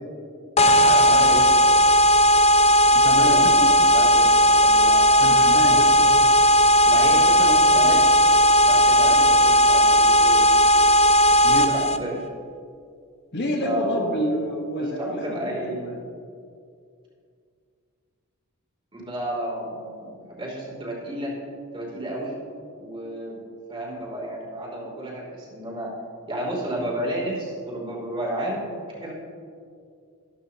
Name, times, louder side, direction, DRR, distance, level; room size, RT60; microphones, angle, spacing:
sound 1, 0.6-12.0, equal, 30° left, 0.5 m, -16 dB
voice 1, 0.8-1.7 3.2-3.4 3.8-5.0 6.8-8.2 8.7-10.4 11.5-12.2 13.6-14.1 14.8-15.8 18.9-21.3 21.7-22.3 22.8-23.4 23.7-25.9 26.3-28.6 28.9-29.1, right 1 dB, 25° right, -4 dB, 2.9 m, -31 dB
voice 2, 2.9-3.7 5.2-6.2 11.4-11.8 13.3-16.0, equal, 55° left, 1 dB, 1.3 m, -28 dB
13.5 x 12.5 x 2.9 m, 2.3 s
head